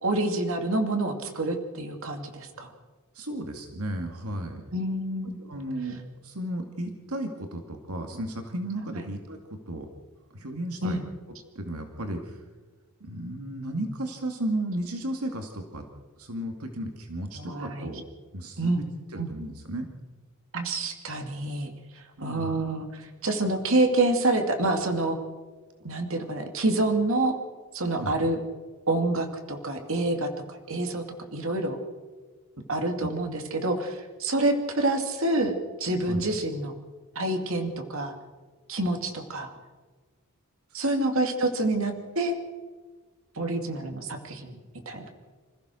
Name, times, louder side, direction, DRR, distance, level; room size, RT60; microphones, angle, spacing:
voice 1, 0.0-2.7 4.7-5.4 10.8-11.0 17.4-17.9 18.6-18.8 19.2-19.3 20.5-21.7 22.2-25.2 25.8-27.3 27.7-28.4 28.9-30.3 30.7-31.0 31.3-31.8 32.7-35.5 35.8-36.7 37.2-38.1 38.7-39.5 40.7-42.4 43.4-44.6 44.9-45.1, right 2 dB, 65° right, 5 dB, 2.5 m, -27 dB
voice 2, 3.1-4.6 5.4-9.9 10.3-11.0 11.6-12.4 13.0-15.8 16.2-18.0 18.3-18.8 19.1-19.9 22.2-22.5 27.9-28.2 33.0-33.1 36.1-36.2 40.9-41.1, right 1 dB, 80° right, 5 dB, 2.3 m, -34 dB
26.5 x 15.0 x 6.4 m, 1.4 s
head